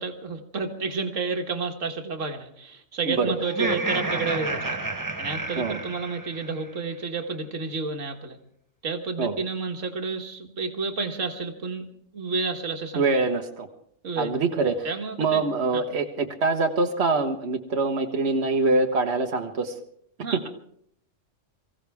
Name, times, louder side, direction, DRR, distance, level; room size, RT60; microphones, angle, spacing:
voice 1, 0.0-4.8 5.2-8.4 8.8-11.9 12.1-13.0 14.0-14.4 14.8-15.4 20.2-20.5, right 4 dB, 80° right, 5 dB, 1.8 m, -30 dB
Laughter, 3.4-6.7, right 2 dB, 15° right, 0.9 m, -30 dB
voice 2, 13.0-13.7 14.2-14.9 15.2-19.7, right 3 dB, 60° right, 3 dB, 1.5 m, -24 dB
24.5 x 15.5 x 3.5 m, 0.66 s
omnidirectional pair, 1.3 m